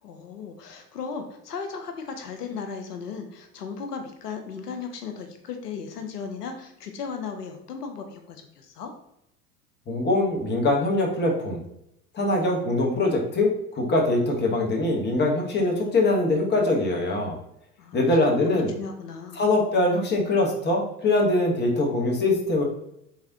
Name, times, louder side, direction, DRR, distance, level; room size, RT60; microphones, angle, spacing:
voice 1, 0.0-8.9 17.8-19.5, left 5 dB, 85° left, 5 dB, 0.7 m, -36 dB
voice 2, 9.9-11.6 12.1-17.4 17.9-18.7 19.4-22.6, left 2 dB, 20° left, 0 dB, 1.0 m, -23 dB
4.0 x 3.4 x 2.7 m, 0.79 s
hypercardioid pair, 80°, 46 cm